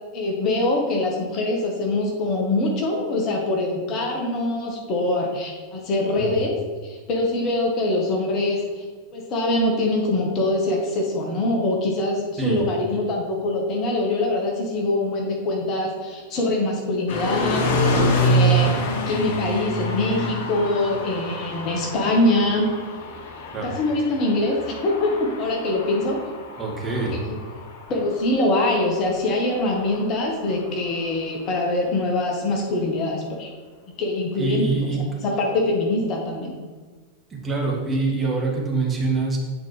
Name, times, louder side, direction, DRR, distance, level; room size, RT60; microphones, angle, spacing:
voice 1, 0.1-6.6 6.8-8.8 9.1-17.9 18.1-22.7 23.6-26.2 27.0-27.4 27.9-33.5 34.0-34.9 35.2-36.5, left 2 dB, 35° left, 0 dB, 1.1 m, -23 dB
sound 1, 17.1-31.1, equal, 55° left, 0.9 m, -27 dB
voice 2, 26.6-27.2 34.4-35.0 37.4-39.4, right 3 dB, 15° right, -3 dB, 1.6 m, -25 dB
8.5 x 4.2 x 3.2 m, 1.4 s
figure-of-eight pair, 90°, 0 cm